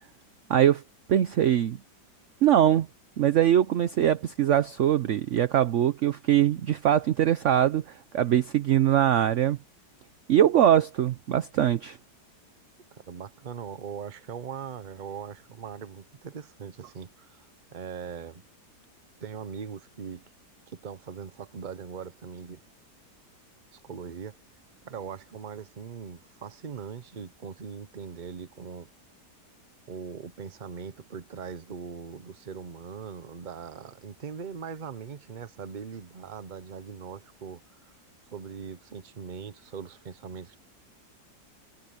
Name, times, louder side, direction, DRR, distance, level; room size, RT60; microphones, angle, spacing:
voice 1, 0.5-0.8 1.1-1.8 2.4-2.9 3.2-9.6 10.3-12.0, right 11 dB, 65° right, 0.8 m, -22 dB
voice 2, 12.9-18.4 19.2-20.3 20.7-22.6 23.7-24.4 24.8-28.9 29.9-37.9 38.3-40.6, right 6 dB, 35° right, 0.8 m, -40 dB
omnidirectional pair, 1.8 m